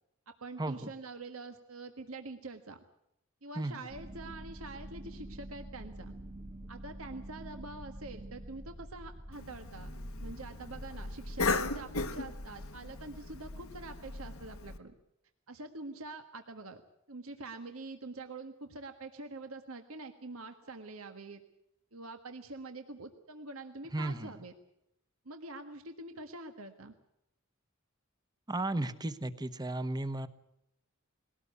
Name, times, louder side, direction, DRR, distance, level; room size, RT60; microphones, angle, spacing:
voice 1, 0.4-2.8 3.4-6.1 6.7-14.9 15.5-16.8 17.1-21.4 21.9-24.5 25.2-26.9, right 3 dB, 85° right, 7 dB, 1.6 m, -45 dB
sound 1, 3.9-12.6, right 1 dB, 35° right, 1.6 m, -47 dB
Cough, 9.3-14.8, left 3 dB, 80° left, 1.2 m, -37 dB
voice 2, 23.9-24.3 28.5-30.3, right 2 dB, 20° right, 12 dB, 1.1 m, -34 dB
21.0 x 18.0 x 8.4 m, 0.81 s
head